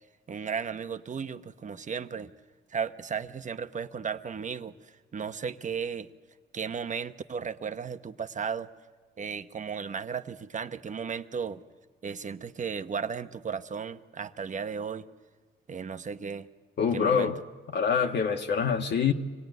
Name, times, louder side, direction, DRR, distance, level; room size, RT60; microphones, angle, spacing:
voice 1, 0.3-2.3 2.7-4.7 5.1-6.1 6.5-8.7 9.2-11.6 12.0-15.1 15.7-16.5 16.9-17.3, right 6 dB, 40° right, 10 dB, 1.0 m, -35 dB
voice 2, 16.8-17.4 17.7-19.1, left 6 dB, 60° left, 3 dB, 1.6 m, -25 dB
25.5 x 18.5 x 9.3 m, 1.5 s
cardioid pair, 90°, 20 cm